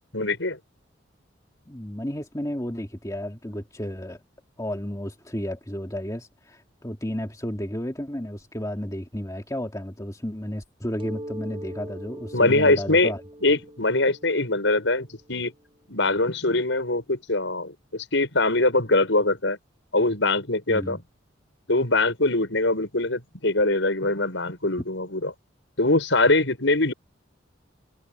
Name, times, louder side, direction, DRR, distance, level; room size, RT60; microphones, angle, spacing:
voice 1, 0.1-0.6 12.3-13.1 13.4-15.5 15.9-19.6 19.9-21.0 21.7-25.3 25.8-26.9, left 2 dB, 75° left, 6.0 m, -22 dB
voice 2, 1.7-4.2 4.6-13.2 20.7-21.0, equal, 15° left, 2.4 m, -32 dB
Mallet percussion, 11.0-16.5, equal, 25° right, 7.7 m, -42 dB
head